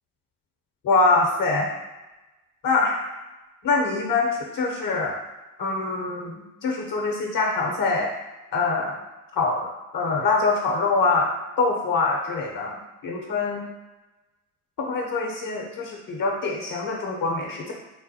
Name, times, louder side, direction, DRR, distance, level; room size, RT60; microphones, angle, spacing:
voice 1, 0.8-1.7 2.6-3.0 3.6-5.1 5.6-8.1 8.5-9.0 9.3-9.7 9.9-11.3 11.6-13.7 14.8-17.7, left 3 dB, 50° left, 0 dB, 1.1 m, -24 dB
4.0 x 2.2 x 2.8 m, 1.1 s
hypercardioid pair, 50°, 43 cm